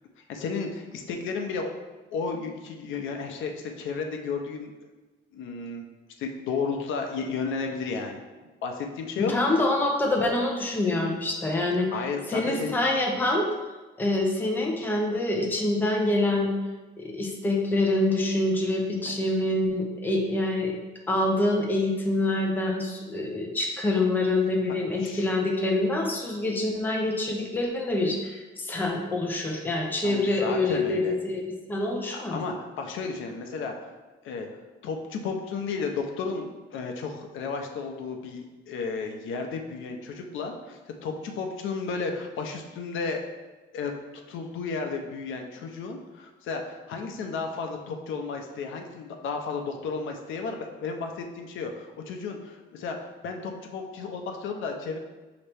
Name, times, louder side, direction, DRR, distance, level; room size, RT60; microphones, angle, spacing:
voice 1, 0.3-1.7 2.1-4.7 5.3-5.8 6.2-8.2 8.6-9.6 11.9-12.8 25.0-25.3 30.0-31.2 32.1-33.9 34.2-34.5 34.8-43.2 43.7-43.9 44.3-55.0, left 4 dB, 85° left, 3 dB, 0.6 m, -33 dB
voice 2, 9.2-11.9 12.3-13.5 14.0-16.5 17.0-20.7 21.1-31.4 31.7-32.4, left 2 dB, 10° left, -1 dB, 0.5 m, -26 dB
5.3 x 2.9 x 3.3 m, 1.2 s
cardioid pair, 175°, 20 cm